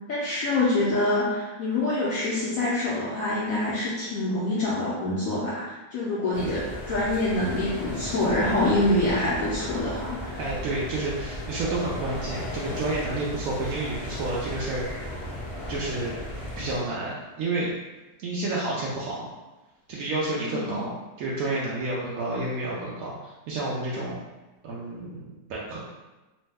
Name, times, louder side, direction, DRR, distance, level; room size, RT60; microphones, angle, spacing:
voice 1, 0.1-10.4 20.4-20.8, left 2 dB, 75° left, -7 dB, 0.7 m, -26 dB
sound 1, 6.3-16.8, left 1 dB, 30° left, 0.5 m, -36 dB
voice 2, 10.4-14.8 15.7-16.2 16.6-17.7 18.2-19.3 19.9-24.2 24.6-25.8, right 2 dB, 75° right, -5 dB, 0.8 m, -30 dB
3.1 x 2.0 x 3.3 m, 1.1 s
omnidirectional pair, 2.0 m